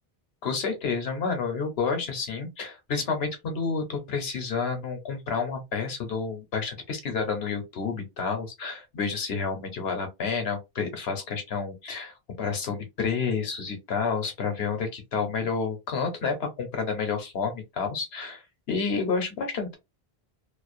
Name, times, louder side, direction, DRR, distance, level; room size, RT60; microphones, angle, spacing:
voice 1, 0.4-18.4 18.7-19.8, left 5 dB, 70° left, 1.0 m, -30 dB
2.5 x 2.0 x 2.5 m
omnidirectional pair, 1.1 m